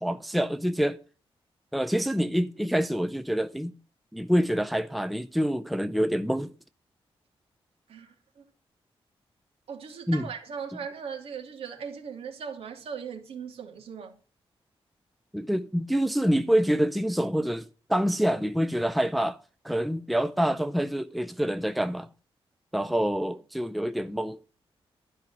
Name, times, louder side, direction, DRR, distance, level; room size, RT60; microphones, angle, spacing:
voice 1, 0.0-1.0 1.7-3.7 4.1-6.5 10.1-10.2 15.3-19.4 19.6-22.1 22.7-24.4, equal, ahead, 0.5 m, -26 dB
voice 2, 7.9-8.4 9.7-14.1, right 6 dB, 80° right, 2.8 m, -39 dB
12.5 x 5.3 x 9.1 m
wide cardioid pair, 160°, 10 cm